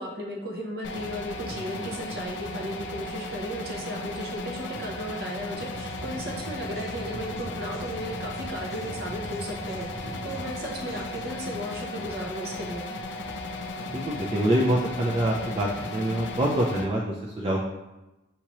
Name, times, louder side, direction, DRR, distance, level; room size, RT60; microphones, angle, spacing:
voice 1, 0.0-12.8, equal, 55° right, -1 dB, 0.8 m, -35 dB
sound 1, 0.8-16.8, left 2 dB, 75° left, 0.4 m, -36 dB
sound 2, 5.5-11.6, equal, 15° left, 0.7 m, -43 dB
voice 2, 13.9-17.6, right 1 dB, 30° right, -3 dB, 0.4 m, -26 dB
5.9 x 2.8 x 3.0 m, 1.0 s
head